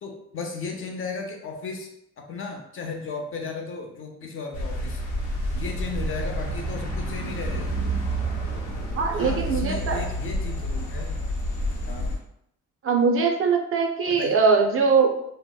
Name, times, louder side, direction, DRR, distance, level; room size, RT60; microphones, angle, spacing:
voice 1, 0.0-1.9 2.2-5.0 5.5-7.8 9.1-11.2 11.9-12.1 14.1-14.4, left 4 dB, 45° left, 2 dB, 0.5 m, -35 dB
sound 1, 4.5-12.2, right 1 dB, 75° left, 0.8 m, -29 dB
voice 2, 9.0-10.1 12.8-15.3, right 5 dB, 45° right, 3 dB, 0.4 m, -21 dB
2.7 x 2.1 x 2.2 m, 0.75 s
cardioid pair, 90°, 30 cm